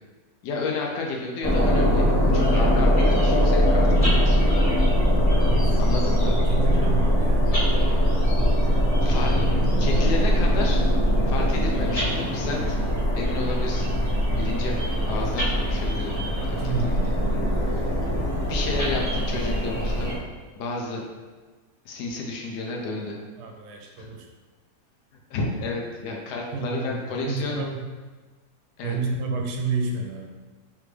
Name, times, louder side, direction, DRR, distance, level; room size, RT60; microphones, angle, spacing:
voice 1, 0.4-4.5 5.8-6.4 9.0-9.4 9.8-10.8 11.3-12.8 13.1-13.9 14.3-14.8 15.1-16.1 16.4-17.2 17.5-18.0 18.5-20.1 20.6-21.0 21.8-23.2 23.9-24.1 25.3-27.6 28.8-29.0, left 3 dB, 75° left, -1 dB, 1.2 m, -31 dB
sound 1, 1.4-20.2, equal, 25° left, 1.0 m, -21 dB
voice 2, 5.5-5.8 6.5-7.5 14.7-15.0 16.4-17.4 23.4-24.3 26.5-27.9 28.8-30.3, right 4 dB, 75° right, 2 dB, 1.1 m, -30 dB
3.7 x 3.4 x 3.2 m, 1.3 s
omnidirectional pair, 1.9 m